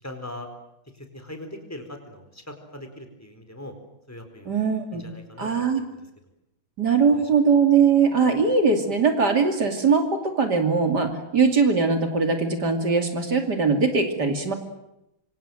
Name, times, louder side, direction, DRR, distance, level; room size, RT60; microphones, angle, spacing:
voice 1, 0.0-0.5 1.0-3.7 4.1-4.6 4.9-6.0 7.1-7.2, left 1 dB, 5° left, 5 dB, 4.4 m, -40 dB
voice 2, 4.4-5.0 5.4-5.8 6.8-14.5, right 5 dB, 55° right, 5 dB, 3.3 m, -21 dB
26.5 x 25.0 x 7.8 m, 0.84 s
omnidirectional pair, 2.2 m